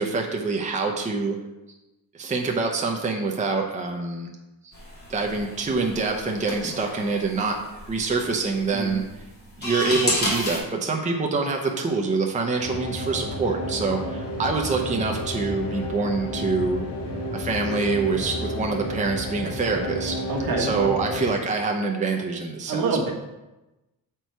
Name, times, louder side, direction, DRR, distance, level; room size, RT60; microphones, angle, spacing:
voice 1, 0.0-1.4 2.1-4.3 4.6-4.7 5.1-7.6 7.9-9.0 9.6-16.8 17.3-20.2 20.6-23.1, right 4 dB, 20° right, 2 dB, 0.7 m, -25 dB
sound 1, 4.7-10.6, left 1 dB, 25° left, 2.7 m, -31 dB
sound 2, 12.6-21.3, left 1 dB, 50° left, 2.7 m, -31 dB
voice 2, 20.3-20.7 22.7-23.1, right 4 dB, 60° right, 1 dB, 1.4 m, -26 dB
8.0 x 4.6 x 4.5 m, 1.0 s
cardioid pair, 140°, 38 cm